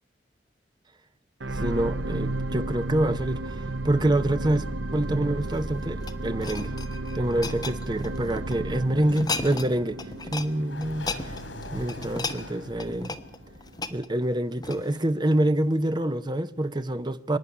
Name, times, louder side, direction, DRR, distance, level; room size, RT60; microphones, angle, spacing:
sound 1, 1.4-13.8 14.4-14.5, right 2 dB, 75° right, 0.8 m, -34 dB
voice 1, 1.5-6.7 7.1-10.0 10.3-11.4 11.7-13.2 13.9-17.4, right 1 dB, 25° right, 0.8 m, -26 dB
sound 2, 5.4-8.6 9.0-9.7 10.0-10.5 10.8-15.1 15.6-15.8, left 3 dB, 20° left, 1.2 m, -35 dB
Sliding door, 9.0-14.0, left 1 dB, 85° left, 3.4 m, -43 dB
24.5 x 11.0 x 9.8 m
head